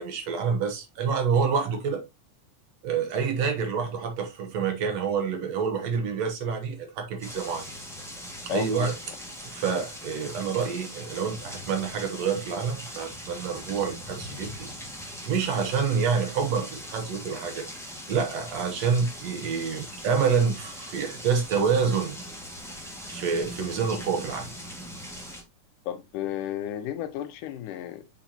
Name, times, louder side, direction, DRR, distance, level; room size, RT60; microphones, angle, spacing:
voice 1, 0.0-2.0 2.8-7.7 8.5-8.9 9.5-14.7 15.3-17.7 18.1-22.2 23.1-24.5, right 6 dB, 65° right, 2.1 m, -27 dB
sound 1, 7.2-25.4, equal, ahead, 0.9 m, -41 dB
voice 2, 8.5-8.9 25.9-28.0, left 11 dB, 90° left, 2.4 m, -33 dB
6.3 x 5.7 x 2.9 m
omnidirectional pair, 3.5 m